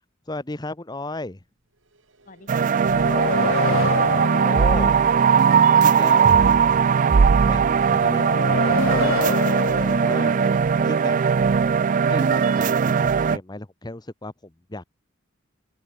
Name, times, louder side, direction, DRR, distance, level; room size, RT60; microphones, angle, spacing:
voice 1, 0.3-1.4 3.4-5.0 5.7-6.5 7.5-11.2 11.6-14.3 14.7-14.8, left 2 dB, 20° left, 1.0 m, -35 dB
sound 1, 1.7-10.8, right 2 dB, 70° right, 3.5 m, -48 dB
voice 2, 2.2-3.3, left 2 dB, 40° left, 2.2 m, -50 dB
sound 2, 2.5-13.4, right 6 dB, 40° right, 0.3 m, -19 dB
sound 3, 2.8-5.6 8.1-10.9, left 6 dB, 85° left, 0.5 m, -28 dB
open air
head